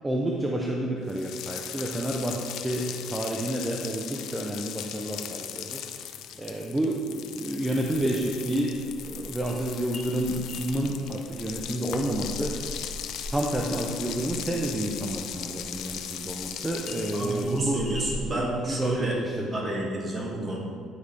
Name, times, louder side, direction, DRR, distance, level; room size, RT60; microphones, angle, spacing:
voice 1, 0.0-5.8 6.4-8.8 9.0-12.6 13.3-17.8 18.3-19.6, right 1 dB, 10° right, -1 dB, 0.6 m, -30 dB
sound 1, 1.1-17.9, left 10 dB, 75° left, 0.4 m, -38 dB
sound 2, 7.7-18.4, equal, 15° left, 1.4 m, -43 dB
voice 2, 17.1-19.2 19.5-20.6, right 2 dB, 30° right, -2 dB, 1.6 m, -29 dB
9.5 x 5.0 x 3.3 m, 2.2 s
cardioid pair, 110°, 0 cm